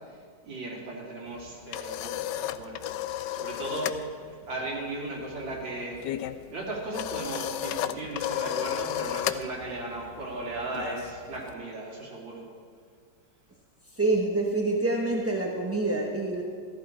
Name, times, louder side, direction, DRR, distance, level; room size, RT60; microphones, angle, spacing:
voice 1, 0.0-3.1 3.3-3.9 4.5-12.4, right 2 dB, 85° right, -3 dB, 3.3 m, -36 dB
sound 1, 1.3-4.0 4.3-4.6 4.9-11.5, left 12 dB, 75° left, 1.1 m, -34 dB
voice 2, 13.9-16.4, right 2 dB, 15° right, -1 dB, 0.4 m, -26 dB
14.0 x 13.5 x 4.4 m, 2.1 s
omnidirectional pair, 2.0 m